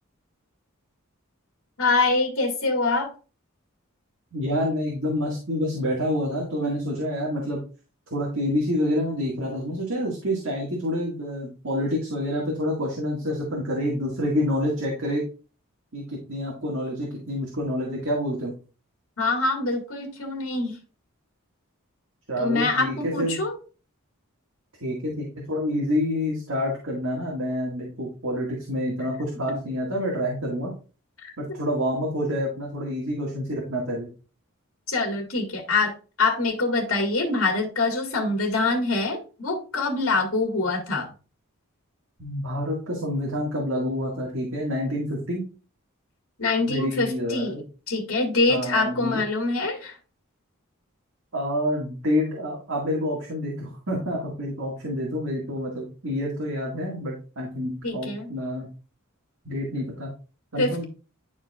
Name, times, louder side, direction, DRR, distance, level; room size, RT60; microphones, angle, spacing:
voice 1, 1.8-3.1 19.2-20.8 22.4-23.6 31.2-31.3 34.9-35.9 36.2-41.1 46.4-47.6 47.9-50.0 57.8-58.3 60.6-60.8, left 3 dB, 75° left, 1 dB, 1.9 m, -24 dB
voice 2, 4.3-7.6 8.1-15.3 15.9-18.5 22.3-23.4 24.8-30.7 31.4-34.1 42.2-45.5 46.7-47.6 48.5-49.2 51.3-58.7 59.4-60.1 60.5-60.8, equal, 70° right, -3 dB, 1.9 m, -28 dB
10.5 x 4.4 x 2.4 m, 0.35 s
head